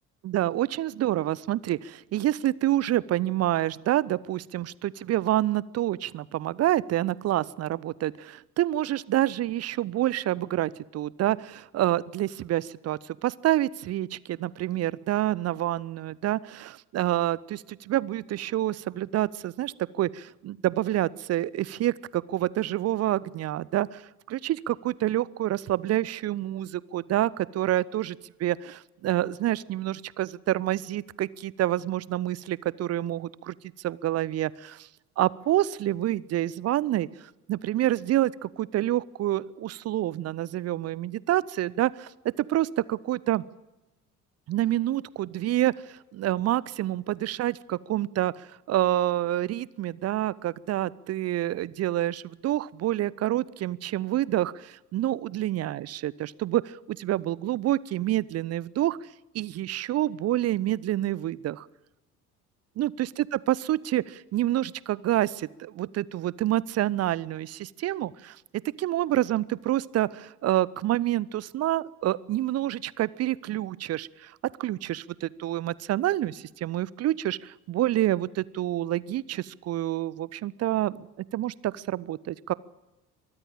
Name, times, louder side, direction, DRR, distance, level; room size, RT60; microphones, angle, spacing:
voice 1, 0.2-24.0 24.3-34.9 35.2-37.1 37.5-42.1 42.4-43.4 44.5-59.0 59.3-61.7 62.8-68.4 68.8-74.3 74.6-81.1 81.3-82.5, right 14 dB, 35° right, 23 dB, 0.7 m, -28 dB
23.5 x 13.5 x 9.0 m, 1.0 s
figure-of-eight pair, 60°, 45 cm